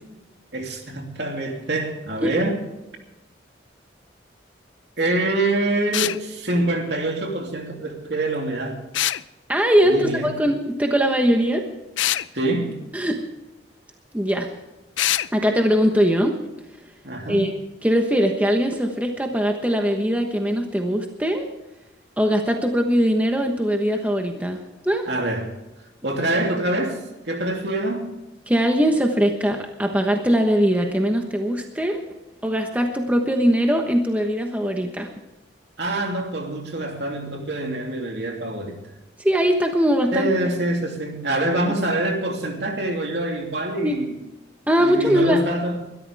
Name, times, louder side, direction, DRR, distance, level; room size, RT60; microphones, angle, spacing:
voice 1, 0.5-2.6 5.0-8.8 9.8-10.3 12.3-12.8 17.0-17.5 25.1-25.5 26.0-28.2 35.8-38.8 40.1-44.2 44.8-45.9, right 2 dB, 60° right, 2 dB, 2.9 m, -25 dB
sound 1, 5.9-6.2 8.9-9.2 12.0-12.3 15.0-15.3, left 13 dB, 80° left, 0.5 m, -23 dB
voice 2, 9.5-11.7 12.9-13.2 14.1-14.5 15.3-16.3 17.3-17.5 17.8-21.5 22.2-25.1 28.5-32.0 32.4-35.1 39.2-40.3 43.8-44.0 44.7-45.4, equal, 10° right, 3 dB, 1.2 m, -21 dB
22.0 x 13.0 x 3.5 m, 1.0 s
head